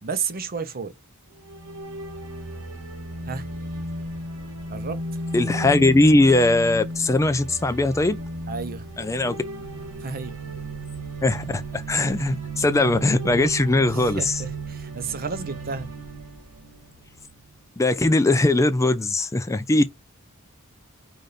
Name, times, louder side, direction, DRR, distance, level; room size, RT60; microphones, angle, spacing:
voice 1, 0.0-0.9 3.2-3.5 4.7-5.0 8.5-8.9 10.0-10.4 13.9-15.9, right 5 dB, 45° right, 0.7 m, -32 dB
sound 1, 1.4-17.5, right 2 dB, 90° right, 1.9 m, -34 dB
voice 2, 5.3-8.2 9.0-9.4 11.2-14.3 17.8-19.8, left 2 dB, 15° left, 0.4 m, -20 dB
5.0 x 2.5 x 3.9 m
head